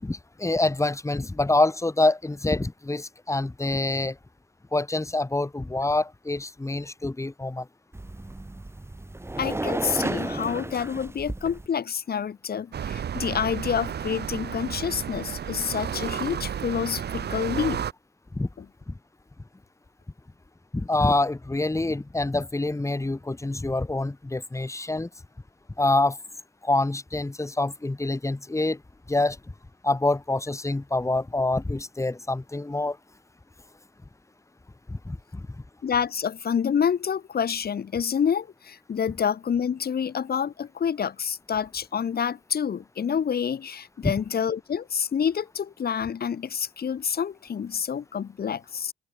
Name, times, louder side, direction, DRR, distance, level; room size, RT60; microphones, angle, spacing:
voice 1, 0.0-4.2 4.7-7.7 18.3-18.5 18.9-19.0 20.7-25.1 25.8-26.2 26.6-28.8 29.1-29.4 29.8-33.0 34.9-35.5 44.0-44.1, left 2 dB, 15° left, 6.5 m, -26 dB
sound 1, 7.9-11.7, right 2 dB, 15° right, 2.7 m, -32 dB
voice 2, 9.4-17.8 18.6-18.7 35.8-48.9, left 7 dB, 50° left, 5.7 m, -28 dB
sound 2, 12.7-17.9, right 8 dB, 55° right, 3.0 m, -32 dB
open air
cardioid pair, 90°, 20 cm